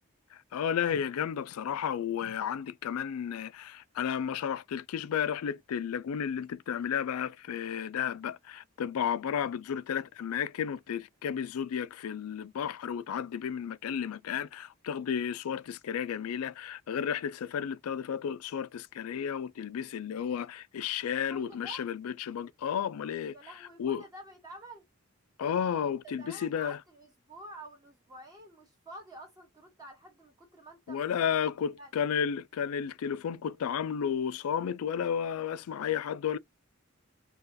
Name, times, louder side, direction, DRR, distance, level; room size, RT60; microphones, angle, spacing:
voice 1, 0.3-23.4 23.8-24.0 25.4-26.8 30.9-36.4, left 8 dB, 90° left, 0.3 m, -33 dB
voice 2, 21.3-21.8 23.3-24.8 26.2-31.0 31.8-31.9, right 1 dB, 15° right, 0.8 m, -48 dB
3.9 x 2.4 x 2.5 m
head